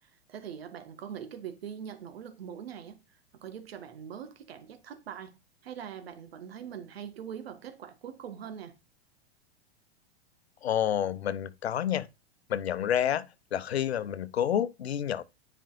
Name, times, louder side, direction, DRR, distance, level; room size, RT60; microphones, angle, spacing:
voice 1, 0.0-5.3 5.6-8.8, right 8 dB, 70° right, 1.6 m, -42 dB
voice 2, 10.6-12.1 12.5-13.3 13.5-15.2, left 10 dB, 80° left, 0.7 m, -29 dB
10.0 x 5.4 x 2.5 m
hypercardioid pair, 95°, 32 cm